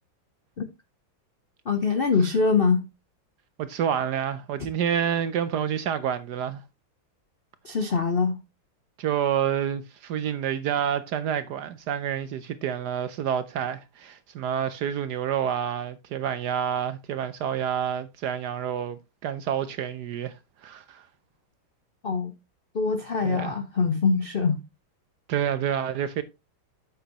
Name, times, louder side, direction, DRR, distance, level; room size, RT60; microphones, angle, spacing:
voice 1, 1.6-2.9 7.6-8.4 22.0-22.3 22.7-24.6, left 5 dB, 75° left, 0.5 m, -24 dB
voice 2, 3.6-6.6 9.0-20.4 20.6-21.1 23.2-23.5 25.3-26.2, right 9 dB, 70° right, 1.0 m, -28 dB
8.2 x 7.9 x 2.9 m
omnidirectional pair, 2.2 m